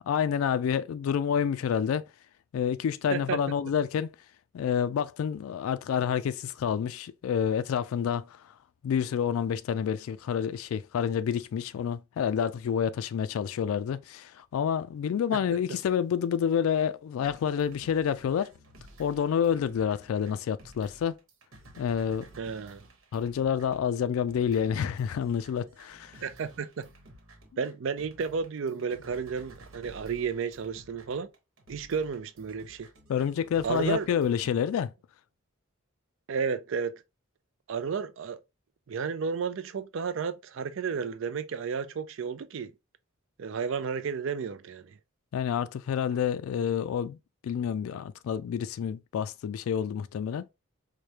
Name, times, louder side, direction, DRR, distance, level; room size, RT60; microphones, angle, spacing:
voice 1, 0.1-2.0 2.5-4.1 4.5-8.5 8.8-18.5 19.0-21.1 21.8-22.3 23.1-26.2 33.1-34.9 45.3-47.2 47.4-50.5, left 8 dB, 85° left, 0.3 m, -28 dB
sound 1, 17.2-34.5, right 1 dB, 80° right, 1.1 m, -53 dB
voice 2, 22.4-22.8 26.2-26.9 27.6-31.3 31.7-32.9 33.6-34.3 36.3-37.0 37.7-38.4 38.9-42.7 43.4-45.0, right 6 dB, 65° right, 0.4 m, -32 dB
4.8 x 2.1 x 2.8 m
head